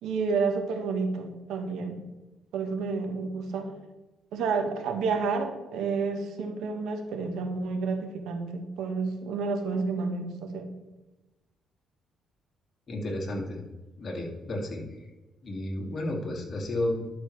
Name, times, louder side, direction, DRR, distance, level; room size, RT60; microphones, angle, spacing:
voice 1, 0.0-2.0 2.5-3.7 4.3-10.7, right 4 dB, 85° right, 5 dB, 1.1 m, -30 dB
voice 2, 12.9-13.6 14.0-14.8 15.4-17.2, left 1 dB, 45° left, 0 dB, 2.1 m, -32 dB
11.0 x 6.4 x 3.2 m, 1.1 s
cardioid pair, 90°, 0 cm